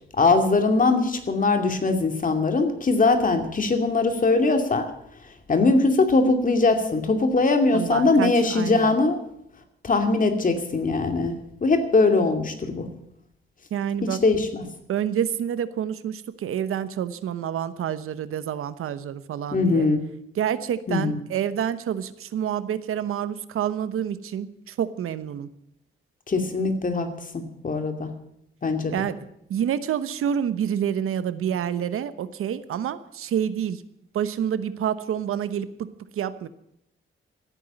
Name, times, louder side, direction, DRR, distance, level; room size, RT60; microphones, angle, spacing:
voice 1, 0.2-4.9 5.5-9.2 9.8-12.9 14.0-14.5 19.5-20.0 20.9-21.2 26.3-27.1 27.3-28.1 28.6-28.9, left 3 dB, 40° left, 6 dB, 2.5 m, -21 dB
voice 2, 7.7-9.0 13.7-14.2 14.9-19.9 20.3-25.5 28.9-29.2 29.5-33.8 34.1-36.5, right 9 dB, 90° right, 14 dB, 1.0 m, -28 dB
15.0 x 9.3 x 9.0 m, 0.78 s
cardioid pair, 105°, 21 cm